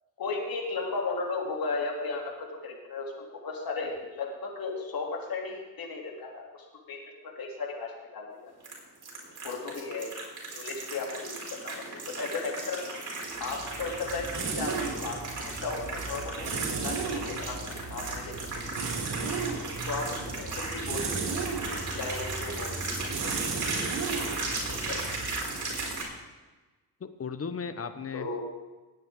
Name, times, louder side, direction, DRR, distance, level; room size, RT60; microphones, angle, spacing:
voice 1, 0.2-6.4 6.9-8.5 9.4-10.1 10.5-11.7 12.2-12.9 13.4-15.8 16.1-18.3 19.9-20.5 20.7-21.1 22.0-23.7 24.7-25.0 28.1-28.4, left 4 dB, 65° left, 0 dB, 3.1 m, -35 dB
sound 1, 8.6-26.0, right 2 dB, 50° right, 4.1 m, -36 dB
sound 2, 13.4-26.1, right 4 dB, 90° right, 2.5 m, -36 dB
voice 2, 27.0-28.3, left 5 dB, 35° left, 10 dB, 1.1 m, -37 dB
19.5 x 9.0 x 3.8 m, 1.2 s
cardioid pair, 80°, 38 cm